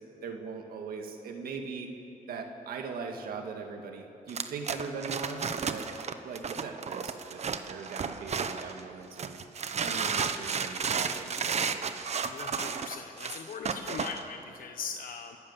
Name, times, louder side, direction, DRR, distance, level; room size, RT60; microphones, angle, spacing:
voice 1, 0.2-1.9 2.3-5.9 6.2-9.4 9.8-11.9, right 5 dB, 80° right, 3 dB, 2.0 m, -40 dB
sound 1, 4.3-8.8 9.2-14.2, right 6 dB, 45° right, 1.1 m, -33 dB
voice 2, 12.3-15.4, left 6 dB, 70° left, 6 dB, 1.0 m, -40 dB
26.5 x 14.0 x 7.4 m, 3.0 s
cardioid pair, 95°, 15 cm